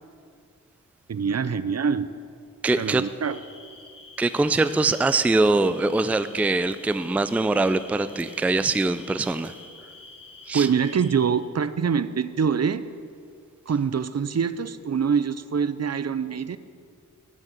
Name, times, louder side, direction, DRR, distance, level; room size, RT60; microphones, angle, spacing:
voice 1, 1.1-2.1 2.8-3.4 10.5-12.8 13.7-16.6, right 6 dB, 50° right, 14 dB, 0.6 m, -24 dB
voice 2, 2.6-3.0 4.2-9.5 10.5-10.7, right 3 dB, 5° right, 12 dB, 0.4 m, -23 dB
sound 1, 3.2-11.3, left 3 dB, 80° left, 2.0 m, -47 dB
16.0 x 6.4 x 8.9 m, 2.2 s
wide cardioid pair, 100°, 32 cm